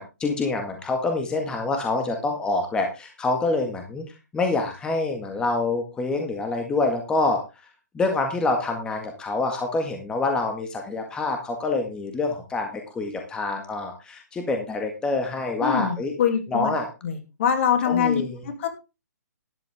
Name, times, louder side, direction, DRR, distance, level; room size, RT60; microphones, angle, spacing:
voice 1, 0.0-4.0 4.3-7.4 7.9-16.1 16.5-16.9 17.8-18.4, left 3 dB, 10° left, 4 dB, 1.8 m, -26 dB
voice 2, 15.6-16.7 17.0-18.2 18.6-18.7, left 8 dB, 45° left, 8 dB, 2.8 m, -23 dB
13.0 x 10.5 x 3.6 m, 0.28 s
hypercardioid pair, 150°, 9 cm